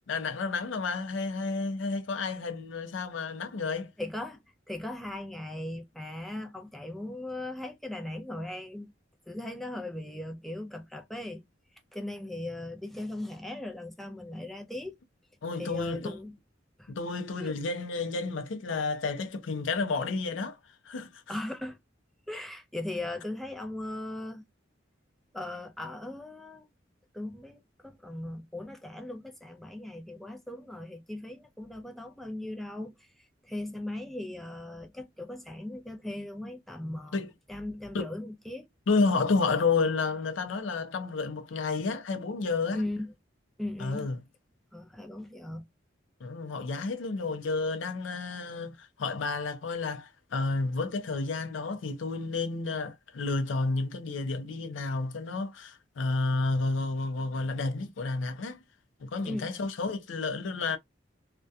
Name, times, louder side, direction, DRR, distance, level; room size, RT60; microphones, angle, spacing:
voice 1, 0.1-3.9 15.4-16.2 16.9-20.6 20.8-21.3 37.1-37.3 37.9-38.1 38.9-42.8 43.8-44.2 46.2-58.6 59.0-60.8, left 3 dB, 75° left, 0.5 m, -31 dB
voice 2, 4.0-4.4 4.7-8.9 9.3-11.4 11.9-15.0 15.6-16.3 16.8-16.9 17.4-17.6 20.0-20.1 21.3-21.8 22.3-24.4 25.3-26.7 27.1-38.7 42.7-43.1 43.6-44.1 44.7-45.6 59.2-59.5, left 1 dB, ahead, 0.4 m, -38 dB
2.6 x 2.2 x 2.3 m
head